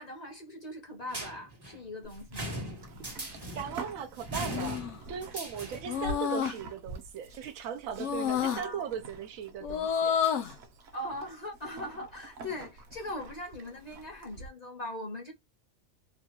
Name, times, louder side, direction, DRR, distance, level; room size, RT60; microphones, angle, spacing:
voice 1, 0.0-2.6 8.4-8.8 10.9-15.3, left 1 dB, 35° left, 0.8 m, -40 dB
sound 1, 1.1-6.1, right 1 dB, 25° right, 0.7 m, -40 dB
Livestock farm animals working animals, 2.0-14.5, right 2 dB, 60° right, 0.9 m, -47 dB
voice 2, 3.5-10.2, right 8 dB, 85° right, 1.0 m, -38 dB
sound 2, 4.5-5.0 5.9-6.6 8.0-8.6 9.6-10.6, left 8 dB, 65° left, 0.9 m, -29 dB
2.9 x 2.3 x 2.9 m
omnidirectional pair, 1.4 m